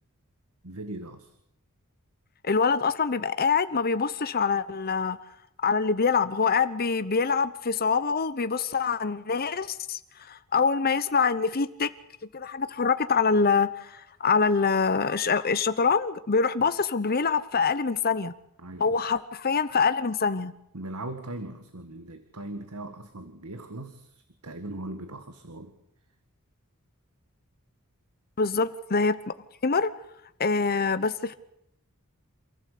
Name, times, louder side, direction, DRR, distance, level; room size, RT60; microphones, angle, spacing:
voice 1, 0.6-1.3 18.6-19.1 20.7-25.7, right 1 dB, 85° right, 8 dB, 2.0 m, -39 dB
voice 2, 2.4-5.2 5.6-10.0 10.3-11.9 12.3-18.3 18.8-20.5 28.4-29.2 29.6-29.9 30.4-31.3, left 5 dB, 45° left, 13 dB, 0.9 m, -25 dB
28.0 x 16.0 x 8.5 m, 0.77 s
head